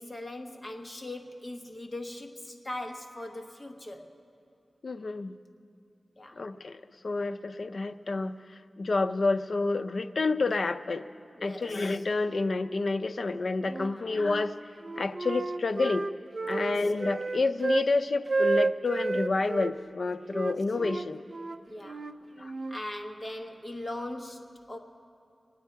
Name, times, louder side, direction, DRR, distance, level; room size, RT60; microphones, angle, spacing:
voice 1, 0.0-4.1 6.2-6.4 11.4-12.0 13.7-14.1 16.5-16.9 20.3-20.5 21.7-22.1 22.7-24.8, left 1 dB, 25° left, 2 dB, 1.3 m, -40 dB
voice 2, 4.8-5.3 6.4-11.1 11.4-14.6 15.0-16.1 16.5-21.2 22.4-22.5, left 3 dB, 65° left, 10 dB, 0.5 m, -29 dB
Wind instrument woodwind instrument, 13.6-14.5 14.8-17.9 18.3-19.7 20.3-22.8, right 3 dB, 45° right, 0.4 m, -31 dB
25.5 x 9.4 x 4.6 m, 2.5 s
wide cardioid pair, 90°, 0 cm